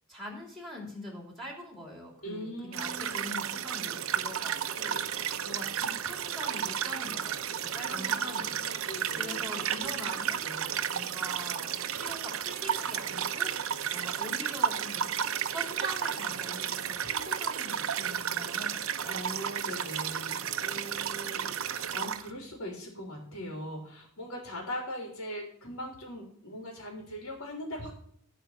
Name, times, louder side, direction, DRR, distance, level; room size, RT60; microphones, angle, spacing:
voice 1, 0.1-5.0 5.4-8.7 9.2-10.4 10.9-13.5 13.9-15.1 15.4-19.2, equal, ahead, 0 dB, 3.3 m, -43 dB
voice 2, 2.2-3.2 4.9-5.6 7.5-9.9 10.4-10.7 19.1-27.9, equal, 85° left, 0 dB, 3.3 m, -41 dB
sound 1, 2.7-22.3, right 8 dB, 70° right, 0.8 m, -33 dB
15.0 x 5.0 x 7.3 m, 0.66 s
head